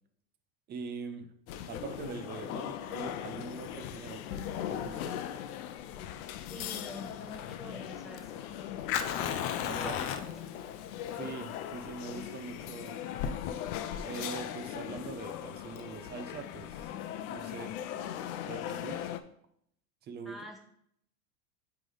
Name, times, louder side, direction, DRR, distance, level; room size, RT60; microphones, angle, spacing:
voice 1, 0.7-1.4 1.7-4.2 4.5-5.2 9.6-10.0 11.2-13.0 14.0-16.9 17.3-17.8 18.5-19.1 20.0-20.4, right 5 dB, 20° right, 8 dB, 0.6 m, -43 dB
sound 1, 1.5-19.2, left 10 dB, 65° left, 0.7 m, -39 dB
Fire, 5.8-16.8, left 8 dB, 30° left, 0.4 m, -38 dB
voice 2, 6.5-8.5 9.7-10.6 20.2-20.6, equal, ahead, -1 dB, 1.0 m, -47 dB
8.9 x 3.4 x 3.9 m, 0.69 s
supercardioid pair, 130°, 46 cm